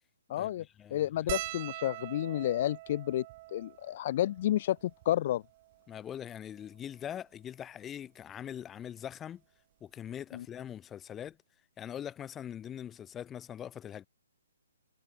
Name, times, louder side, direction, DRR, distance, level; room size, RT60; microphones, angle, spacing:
voice 1, 0.3-0.7 0.9-5.4 10.3-10.5, left 13 dB, 40° left, 0.3 m, -31 dB
sound 1, 1.3-5.9 6.6-6.7 6.9-7.1 8.4-8.6 10.1-10.2 10.4-10.6, right 19 dB, 30° right, 1.6 m, -43 dB
voice 2, 5.9-9.4 9.8-11.4 11.8-14.1, left 9 dB, 15° left, 3.7 m, -42 dB
figure-of-eight pair, 135°, 0 cm